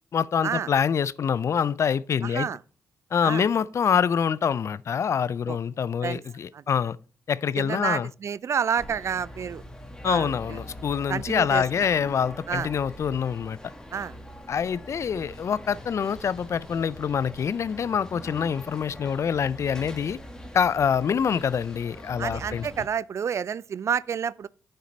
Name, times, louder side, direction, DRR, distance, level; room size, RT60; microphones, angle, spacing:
voice 1, 0.1-2.5 3.1-7.0 7.3-8.1 10.0-13.6 14.5-20.2 20.5-22.7, left 7 dB, 55° left, 0.4 m, -25 dB
voice 2, 2.2-2.6 3.2-3.4 5.5-5.6 6.0-6.2 6.5-6.6 7.6-9.6 10.0-10.6 11.1-11.6 12.5-12.7 13.9-14.1 22.2-24.5, right 7 dB, 50° right, 0.4 m, -29 dB
sound 1, 8.8-22.9, equal, 10° left, 2.0 m, -43 dB
9.3 x 6.6 x 4.3 m
supercardioid pair, 55°, 6 cm